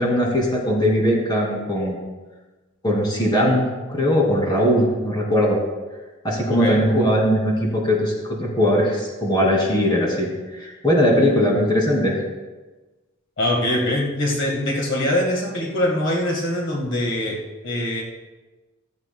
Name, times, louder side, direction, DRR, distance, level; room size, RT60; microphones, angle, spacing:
voice 1, 0.0-2.0 2.8-5.6 6.2-12.2, equal, 20° left, -2 dB, 2.6 m, -20 dB
voice 2, 6.5-6.8 13.4-18.0, left 1 dB, 65° left, -1 dB, 1.8 m, -23 dB
15.5 x 13.0 x 2.3 m, 1.2 s
head